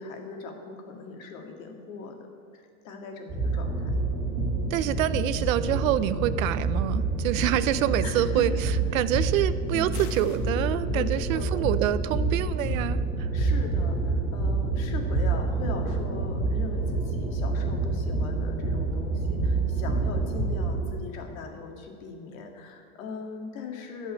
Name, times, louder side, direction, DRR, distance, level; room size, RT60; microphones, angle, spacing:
voice 1, 0.0-2.2 2.5-3.9 4.7-5.0 8.0-8.4 9.7-10.1 10.9-11.7 13.3-24.1, left 4 dB, 65° left, 3 dB, 2.0 m, -39 dB
sound 1, 3.3-20.8, right 3 dB, 35° right, 2.8 m, -27 dB
voice 2, 4.7-13.3, right 11 dB, 70° right, 15 dB, 0.6 m, -27 dB
sound 2, 9.9-10.5, left 7 dB, 90° left, 1.4 m, -45 dB
13.0 x 5.5 x 8.8 m, 2.3 s
supercardioid pair, 170°, 43 cm